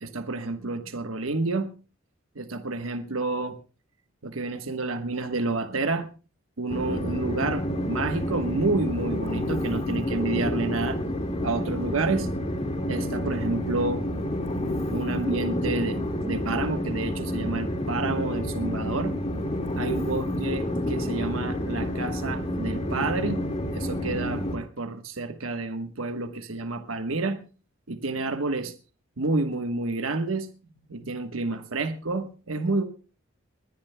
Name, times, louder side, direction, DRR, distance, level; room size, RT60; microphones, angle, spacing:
voice 1, 0.0-1.7 2.3-3.6 4.2-6.1 6.6-11.0 11.4-12.3 12.9-14.1 14.9-19.1 19.7-23.4 23.7-27.4 27.9-28.7 29.2-30.5 30.9-32.8, right 3 dB, 90° right, 7 dB, 1.2 m, -29 dB
Train, 6.7-24.6, left 1 dB, 30° left, 2.0 m, -29 dB
21.0 x 20.0 x 2.2 m, 0.36 s
head